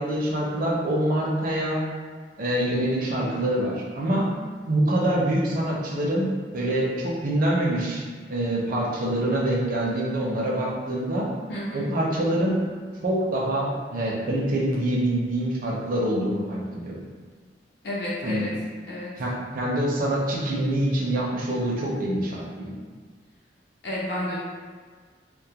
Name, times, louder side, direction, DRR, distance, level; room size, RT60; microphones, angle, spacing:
voice 1, 0.0-1.8 2.4-4.3 4.7-8.0 8.3-11.3 11.7-12.5 13.0-17.0 18.2-18.4 19.2-22.7, right 1 dB, 50° right, -3 dB, 0.5 m, -25 dB
voice 2, 11.5-11.9 17.8-18.5 18.9-19.1 23.8-24.4, left 1 dB, 65° left, -6 dB, 0.6 m, -31 dB
2.2 x 2.1 x 2.8 m, 1.5 s
head